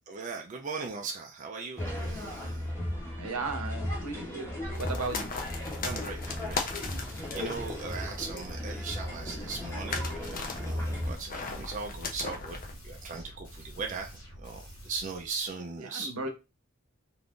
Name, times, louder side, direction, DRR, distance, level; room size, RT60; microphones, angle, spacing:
voice 1, 0.1-2.7 5.8-6.6 6.9-12.6 12.8-16.3, right 4 dB, 35° right, 0.4 m, -39 dB
sound 1, 1.8-11.2, left 1 dB, 10° left, 0.8 m, -36 dB
voice 2, 3.2-4.5 4.8-5.3 15.8-16.3, right 3 dB, 80° right, 0.7 m, -35 dB
sound 2, 4.7-12.7, left 4 dB, 40° left, 0.5 m, -39 dB
sound 3, 10.7-15.6, equal, 75° left, 1.2 m, -48 dB
2.5 x 2.4 x 3.5 m
head